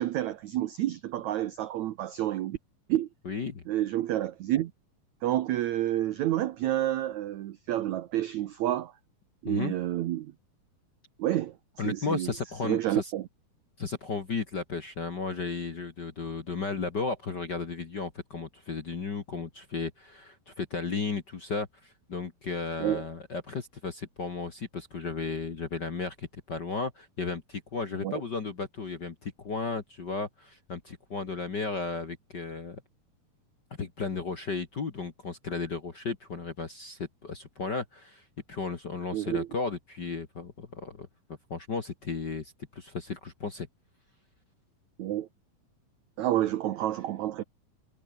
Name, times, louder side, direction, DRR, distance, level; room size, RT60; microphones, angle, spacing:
voice 1, 0.0-2.6 2.9-3.1 3.7-4.7 5.2-8.9 9.4-10.3 11.2-11.5 11.8-12.3 12.6-13.2 22.8-23.0 28.0-28.1 39.1-39.5 45.0-45.3 46.2-47.4, right 13 dB, 80° right, 1.6 m, -29 dB
voice 2, 3.2-3.6 9.4-9.7 11.8-13.1 13.8-32.8 33.8-41.1 41.5-43.7, left 4 dB, 40° left, 1.6 m, -34 dB
omnidirectional pair, 4.5 m